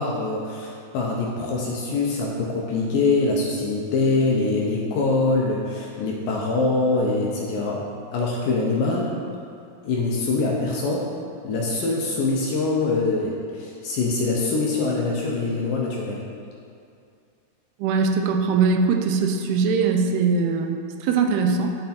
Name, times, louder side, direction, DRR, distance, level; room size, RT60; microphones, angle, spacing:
voice 1, 0.0-7.9 8.1-9.1 9.8-11.1 11.4-16.3, left 3 dB, 75° left, -2 dB, 2.1 m, -24 dB
voice 2, 17.8-21.8, right 5 dB, 85° right, 4 dB, 2.6 m, -21 dB
10.5 x 5.9 x 4.4 m, 2.4 s
omnidirectional pair, 4.6 m